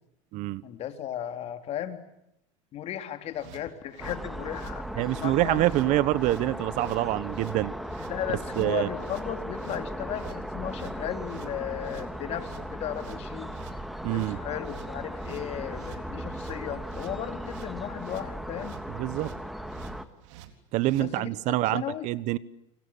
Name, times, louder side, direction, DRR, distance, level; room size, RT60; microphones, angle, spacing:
voice 1, 0.6-2.0 2.7-6.0 8.1-13.5 14.1-18.7 21.0-22.1, left 10 dB, 40° left, 8 dB, 3.3 m, -36 dB
sound 1, 3.3-21.1, right 11 dB, 70° right, 3.8 m, -49 dB
sound 2, 4.0-20.0, equal, ahead, 1.9 m, -37 dB
voice 2, 5.0-7.7 8.6-8.9 14.0-14.4 18.9-19.3 20.7-22.4, right 16 dB, 50° right, 18 dB, 1.1 m, -26 dB
30.0 x 25.0 x 7.2 m, 0.79 s
supercardioid pair, 130°, 16 cm